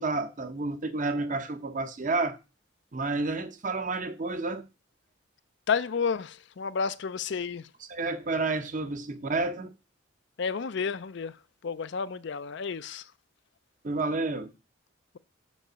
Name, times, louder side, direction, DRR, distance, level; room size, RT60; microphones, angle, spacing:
voice 1, 0.0-2.4 2.9-4.6 7.9-9.7 13.8-14.5, right 3 dB, 40° right, 0.8 m, -30 dB
voice 2, 5.7-7.7 10.4-13.1, left 5 dB, 60° left, 0.4 m, -31 dB
5.7 x 5.3 x 6.2 m
head